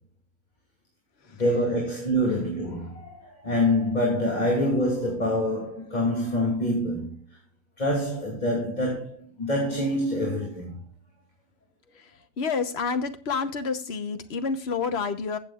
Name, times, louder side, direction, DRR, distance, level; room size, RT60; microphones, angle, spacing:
voice 1, 1.4-7.2 7.8-10.8, left 1 dB, 40° left, 2.8 m, -26 dB
voice 2, 12.4-15.4, left 5 dB, 75° left, 1.3 m, -29 dB
15.5 x 7.4 x 2.4 m
omnidirectional pair, 1.1 m